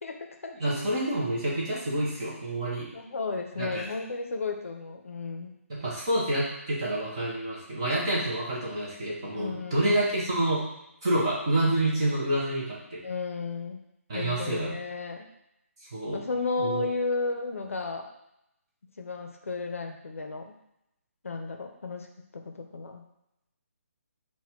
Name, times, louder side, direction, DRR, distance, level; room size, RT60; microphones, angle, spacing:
voice 1, 0.0-0.6 2.9-5.6 9.3-9.9 13.0-13.8 14.1-15.2 16.1-18.1 19.0-20.5 21.2-22.1 22.3-23.0, left 3 dB, 65° left, 3 dB, 0.6 m, -33 dB
voice 2, 0.6-2.9 3.6-3.8 5.7-10.6 11.0-13.0 14.1-14.8 15.9-16.2 16.6-16.9, right 1 dB, 20° right, -6 dB, 0.8 m, -28 dB
4.2 x 2.2 x 4.3 m, 0.83 s
hypercardioid pair, 180°, 8 cm